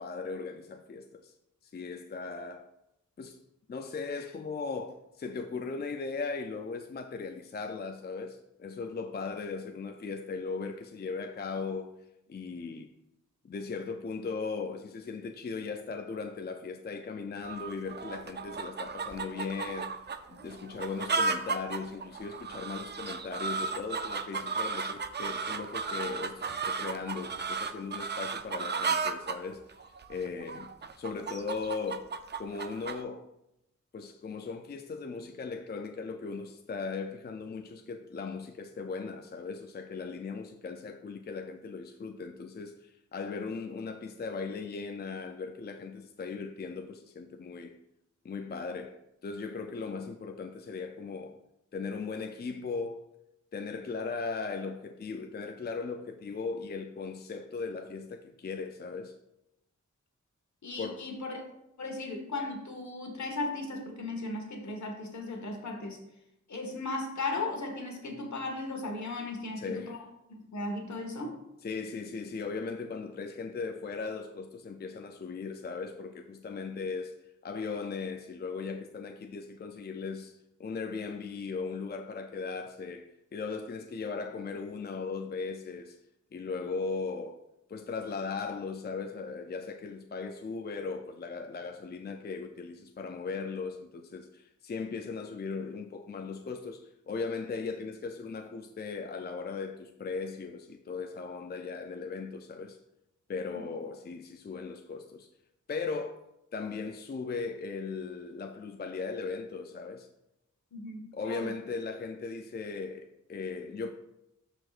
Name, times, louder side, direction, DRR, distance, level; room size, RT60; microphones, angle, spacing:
voice 1, 0.0-1.3 1.6-2.7 3.2-3.4 3.7-11.9 12.3-12.9 13.4-19.9 20.3-32.1 32.4-33.2 33.9-47.8 48.2-51.4 51.7-53.0 53.5-59.2 60.8-61.1 69.6-70.0 71.6-77.2 77.4-86.0 86.3-87.4 87.7-102.8 103.3-105.3 105.7-106.2 106.5-110.1 111.1-113.9, left 4 dB, 35° left, 0.4 m, -38 dB
sound 1, 17.4-33.0, right 4 dB, 35° right, 0.4 m, -34 dB
voice 2, 60.6-61.4 61.8-66.0 66.5-70.0 70.3-71.4 110.7-111.5, left 2 dB, 70° left, 1.5 m, -36 dB
12.0 x 4.9 x 2.5 m
wide cardioid pair, 115°, 30 cm